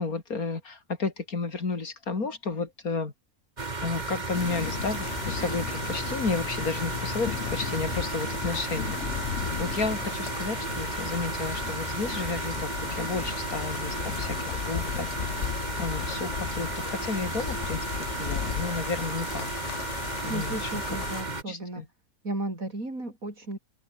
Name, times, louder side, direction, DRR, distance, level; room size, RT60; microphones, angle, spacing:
voice 1, 0.0-3.1 3.8-9.0 9.6-15.4 15.8-17.9 18.2-19.5 20.2-20.8 21.3-21.9, left 4 dB, 85° left, 3.6 m, -32 dB
sound 1, 3.6-21.4, right 3 dB, 30° right, 1.8 m, -34 dB
sound 2, 4.3-21.2, left 9 dB, 60° left, 1.2 m, -35 dB
voice 2, 19.9-21.9 22.2-23.6, right 2 dB, 70° right, 7.1 m, -35 dB
omnidirectional pair, 1.5 m